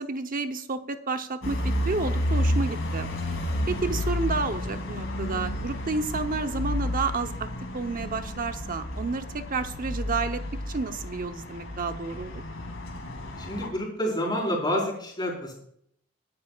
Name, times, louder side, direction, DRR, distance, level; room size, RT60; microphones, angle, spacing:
voice 1, 0.0-1.6 1.9-3.1 3.7-7.3 7.7-10.4 10.7-12.4, right 4 dB, 45° right, 8 dB, 0.9 m, -30 dB
sound 1, 1.4-13.7, left 1 dB, 70° left, 2.5 m, -31 dB
voice 2, 13.4-15.5, equal, 20° left, -2 dB, 4.7 m, -28 dB
22.5 x 9.8 x 2.4 m, 0.71 s
head